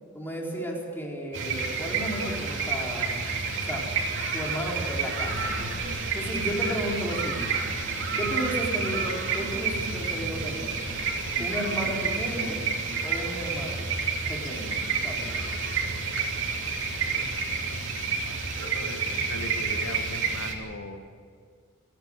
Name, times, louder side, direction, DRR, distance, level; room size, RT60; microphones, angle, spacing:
voice 1, 0.1-3.2 3.6-3.8 4.3-5.4 6.1-7.5 8.2-10.7 11.4-12.6 13.0-13.9 14.3-15.4, equal, 10° left, -2 dB, 4.1 m, -33 dB
sound 1, 1.3-20.5, right 4 dB, 65° right, 3.1 m, -29 dB
sound 2, 5.3-7.0 7.3-9.1 9.4-13.1, right 1 dB, 40° right, 3.3 m, -42 dB
voice 2, 16.5-21.0, left 2 dB, 85° left, 6 dB, 1.5 m, -41 dB
29.5 x 10.5 x 9.0 m, 2.2 s
head